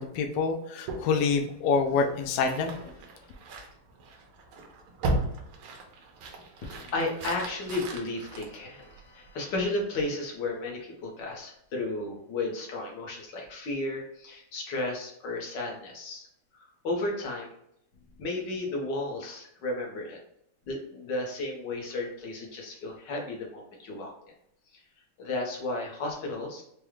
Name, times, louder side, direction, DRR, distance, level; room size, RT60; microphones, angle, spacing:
voice 1, 0.0-2.9, left 5 dB, 85° left, 3 dB, 0.9 m, -27 dB
sound 1, 0.8-9.3, right 2 dB, 75° right, 1.6 m, -37 dB
voice 2, 6.6-16.3 16.5-17.5 18.2-20.2 20.7-24.1 25.2-26.6, left 2 dB, 60° left, -1 dB, 1.5 m, -33 dB
5.0 x 2.2 x 3.1 m, 0.75 s
omnidirectional pair, 2.4 m